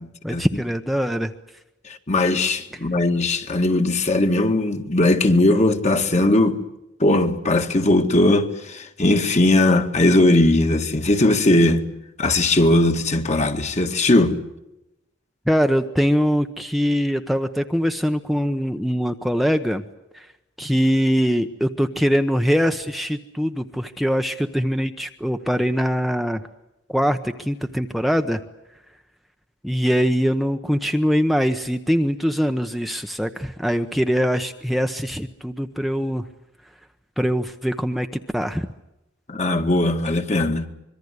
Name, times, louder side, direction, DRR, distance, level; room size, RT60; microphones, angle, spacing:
voice 1, 0.2-1.3 15.5-19.8 20.1-20.3 20.6-26.4 26.9-28.4 29.6-36.2 37.2-38.1 38.3-38.7, equal, ahead, 0.9 m, -22 dB
voice 2, 1.9-6.6 7.0-11.9 12.2-14.4 39.3-40.7, left 2 dB, 40° left, 2.1 m, -19 dB
25.5 x 23.5 x 8.2 m
head